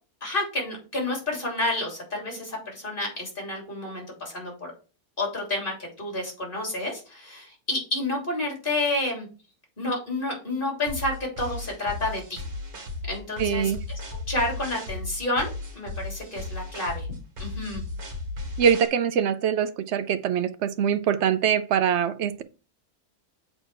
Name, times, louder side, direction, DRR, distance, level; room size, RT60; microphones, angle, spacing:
voice 1, 0.2-4.7 5.2-9.3 9.8-12.4 13.1-13.7 14.1-17.1 17.4-17.8, left 2 dB, 35° left, 3.4 m, -30 dB
sound 1, 10.9-18.9, left 2 dB, 75° right, 2.1 m, -35 dB
voice 2, 13.4-13.8 18.6-22.4, right 8 dB, 60° right, 0.7 m, -23 dB
7.6 x 4.3 x 4.8 m
omnidirectional pair, 1.6 m